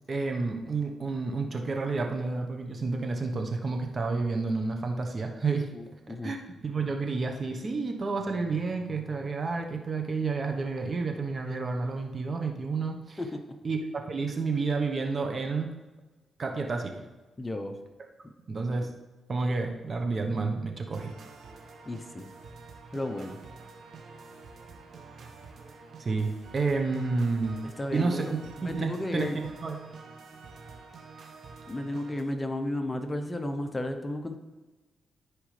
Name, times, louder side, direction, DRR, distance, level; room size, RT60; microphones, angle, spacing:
voice 1, 0.1-5.7 6.2-6.4 6.6-13.2 13.6-15.7 16.4-16.9 18.5-18.9 19.3-21.1 26.0-27.6 27.9-29.8, right 4 dB, 45° right, 3 dB, 1.1 m, -30 dB
voice 2, 5.7-6.3 13.2-13.3 17.4-17.7 21.9-22.3 22.9-23.4 27.8-28.3 28.6-29.4 31.7-34.4, left 1 dB, 20° left, 6 dB, 0.8 m, -33 dB
sound 1, 20.9-32.2, right 4 dB, 65° right, 1.4 m, -48 dB
14.0 x 4.9 x 3.3 m, 1.2 s
cardioid pair, 75°, 0 cm